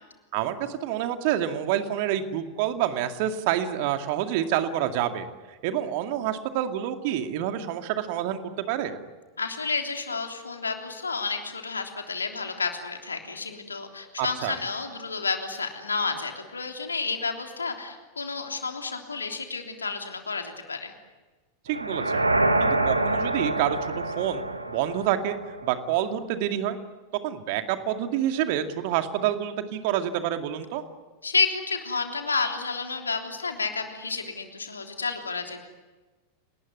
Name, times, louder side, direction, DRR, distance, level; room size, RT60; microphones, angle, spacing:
voice 1, 0.3-5.3 5.6-9.0 14.2-14.5 21.7-22.2 22.6-24.4 24.7-25.4 25.6-26.8 27.2-30.8, right 11 dB, 45° right, 7 dB, 2.3 m, -27 dB
voice 2, 9.4-20.9 31.2-35.6, left 4 dB, 75° left, 4 dB, 3.3 m, -30 dB
sound 1, 21.7-25.8, right 2 dB, 85° right, 1.8 m, -26 dB
30.0 x 20.0 x 9.6 m, 1.3 s
figure-of-eight pair, 90°, 0 cm